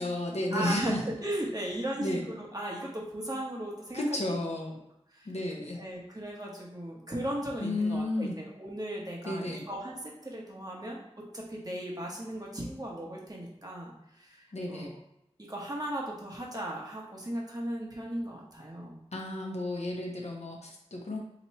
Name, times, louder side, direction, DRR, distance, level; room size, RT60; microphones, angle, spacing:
voice 1, 0.0-1.0 2.0-2.2 3.9-4.8 5.3-5.8 7.6-8.4 9.2-9.7 14.5-15.0 19.1-21.2, left 1 dB, 75° left, 0 dB, 0.7 m, -32 dB
voice 2, 0.5-4.2 5.1-5.3 5.8-11.0 11.3-14.9 15.5-19.0, right 1 dB, 35° right, -3 dB, 1.1 m, -36 dB
3.0 x 2.8 x 4.3 m, 0.81 s
wide cardioid pair, 40°, 11 cm